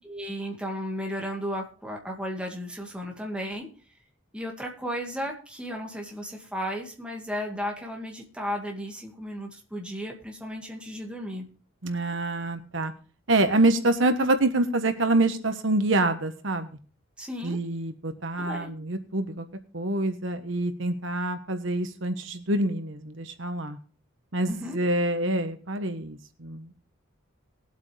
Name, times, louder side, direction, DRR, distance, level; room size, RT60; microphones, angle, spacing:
voice 1, 0.0-3.7 4.3-11.5 17.2-17.6 18.4-18.7 24.5-24.8, equal, 5° right, 0 dB, 2.1 m, -34 dB
voice 2, 11.8-12.9 13.3-16.7 17.4-19.5 19.7-23.8 24.3-26.7, right 2 dB, 70° right, 8 dB, 1.3 m, -26 dB
20.5 x 8.1 x 3.4 m, 0.37 s
head